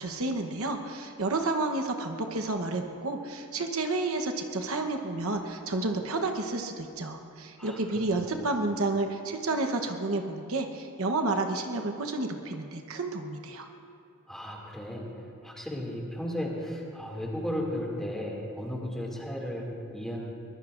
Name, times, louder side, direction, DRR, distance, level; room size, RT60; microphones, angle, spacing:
voice 1, 0.0-13.7, right 2 dB, 70° right, 5 dB, 1.0 m, -30 dB
voice 2, 14.3-20.2, equal, ahead, -2 dB, 2.4 m, -35 dB
23.0 x 21.0 x 2.6 m, 2.6 s
head